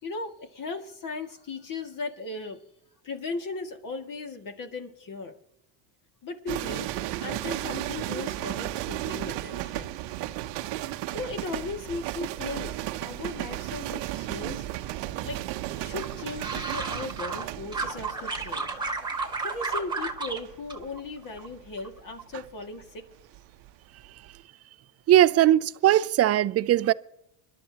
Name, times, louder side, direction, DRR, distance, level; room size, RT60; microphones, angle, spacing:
voice 1, 0.0-2.6 3.0-5.3 6.2-6.9 7.2-9.9 11.1-12.7 13.0-15.4 15.8-18.7 19.4-23.1, left 3 dB, 40° left, 2.3 m, -37 dB
sound 1, 6.5-23.7 24.0-24.4, right 15 dB, 60° right, 0.9 m, -35 dB
sound 2, 16.0-17.4 17.7-20.4 20.7-21.5 21.8-22.2, right 3 dB, 10° right, 2.0 m, -32 dB
voice 2, 25.1-26.9, right 13 dB, 30° right, 0.5 m, -20 dB
24.0 x 12.0 x 3.0 m
supercardioid pair, 105°, 49 cm